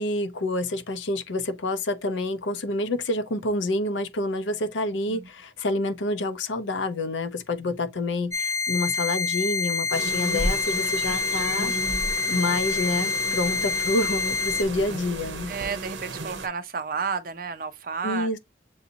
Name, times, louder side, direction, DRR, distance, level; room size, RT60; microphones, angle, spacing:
voice 1, 0.0-11.7 12.3-15.5 18.0-18.4, left 2 dB, 80° left, 0.7 m, -28 dB
sound 1, 8.3-14.6, left 4 dB, 15° left, 0.5 m, -27 dB
sound 2, 9.9-16.5, right 2 dB, 75° right, 0.8 m, -33 dB
voice 2, 15.5-18.4, right 5 dB, 45° right, 0.5 m, -32 dB
7.0 x 2.6 x 2.7 m
head